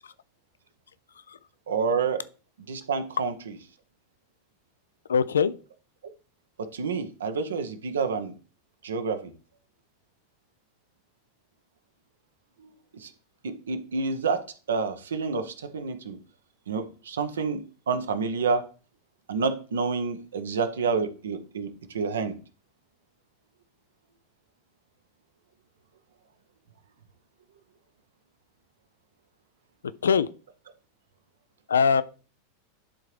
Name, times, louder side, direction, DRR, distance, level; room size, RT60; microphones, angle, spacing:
voice 1, 1.7-2.2 2.6-3.5 6.6-8.3 8.8-9.3 12.6-13.1 13.4-16.2 16.7-18.6 19.3-22.4, right 5 dB, 70° right, 0.8 m, -29 dB
voice 2, 5.1-5.5 30.0-30.3 31.7-32.0, left 6 dB, 75° left, 0.4 m, -21 dB
11.0 x 3.8 x 3.2 m
figure-of-eight pair, 90°, 0 cm